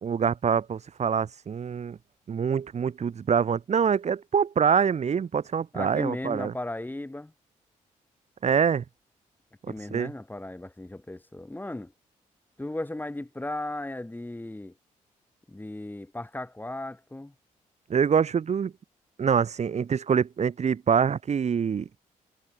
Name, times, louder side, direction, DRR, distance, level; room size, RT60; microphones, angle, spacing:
voice 1, 0.0-2.0 2.3-6.5 8.4-8.8 9.9-10.1 17.9-18.7 19.2-21.9, right 7 dB, 55° right, 2.9 m, -25 dB
voice 2, 5.7-7.3 9.7-11.9 12.6-14.7 15.5-17.3, left 1 dB, 15° left, 5.0 m, -36 dB
cardioid pair, 75°, 14 cm